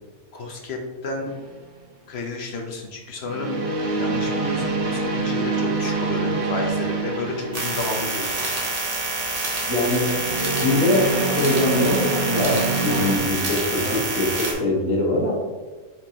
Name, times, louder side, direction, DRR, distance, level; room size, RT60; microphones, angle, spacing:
voice 1, 0.3-1.3 2.1-8.3 13.8-14.0, left 2 dB, 60° left, 1 dB, 0.9 m, -31 dB
sound 1, 1.3-1.6 3.3-8.3 10.1-13.2, right 3 dB, 60° right, 0.3 m, -26 dB
sound 2, 7.5-14.5, right 2 dB, 35° right, 0.9 m, -27 dB
voice 2, 9.6-10.1 10.4-11.1 11.4-15.3, left 1 dB, 75° left, -3 dB, 1.6 m, -23 dB
4.5 x 4.2 x 2.8 m, 1.3 s
omnidirectional pair, 1.4 m